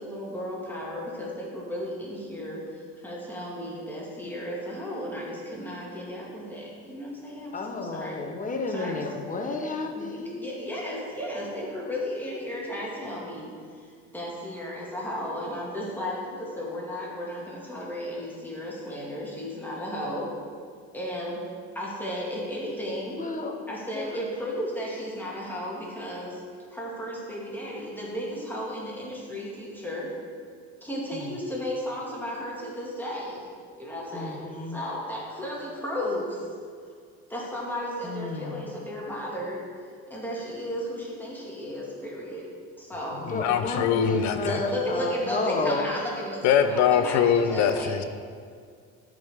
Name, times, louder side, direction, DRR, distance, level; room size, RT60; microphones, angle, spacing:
voice 1, 0.0-7.5 7.9-8.1 8.7-9.0 9.4-9.6 9.9-13.5 14.1-20.3 20.9-21.4 21.7-23.2 23.7-26.4 26.7-30.1 30.8-33.4 33.8-34.4 34.7-36.4 37.3-39.6 40.1-42.5 42.8-43.3 43.7-43.8 44.4-47.2 47.5-47.9, equal, 5° left, -5 dB, 2.1 m, -34 dB
voice 2, 7.5-10.4 23.2-24.1 31.1-31.3 34.1-34.8 38.0-38.7 43.2-45.9, left 3 dB, 25° left, 3 dB, 1.1 m, -32 dB
voice 3, 43.3-44.6 46.4-48.0, left 7 dB, 70° left, 9 dB, 0.7 m, -23 dB
13.5 x 5.1 x 3.6 m, 2.1 s
cardioid pair, 105°, 30 cm